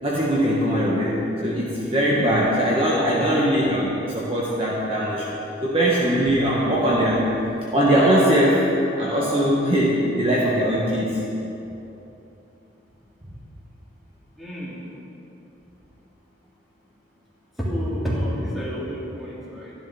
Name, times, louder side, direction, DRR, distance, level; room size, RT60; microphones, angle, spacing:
voice 1, 0.0-5.3 5.6-7.4 7.7-8.7 9.0-11.2, equal, 30° right, -5 dB, 1.5 m, -21 dB
voice 2, 2.9-3.4 14.4-14.9 17.6-19.7, equal, ahead, -8 dB, 3.0 m, -29 dB
13.5 x 11.0 x 5.7 m, 3.0 s
head